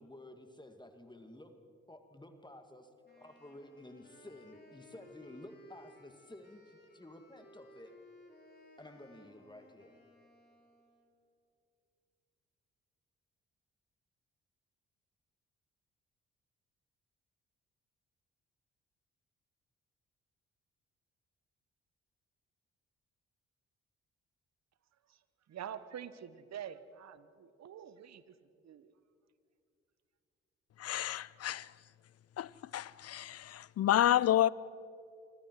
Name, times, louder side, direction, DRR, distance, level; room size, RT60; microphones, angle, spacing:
voice 1, 0.0-1.5 1.9-2.9 3.2-7.9 8.8-10.0, left 1 dB, 15° left, 2.3 m, -52 dB
Wind instrument woodwind instrument, 3.0-11.1, left 1 dB, 35° left, 5.6 m, -60 dB
voice 2, 24.9-29.0, right 9 dB, 55° right, 1.3 m, -47 dB
voice 3, 30.8-31.7 32.4-34.5, left 12 dB, 50° left, 0.6 m, -30 dB
26.0 x 25.5 x 4.8 m
hypercardioid pair, 45°, 31 cm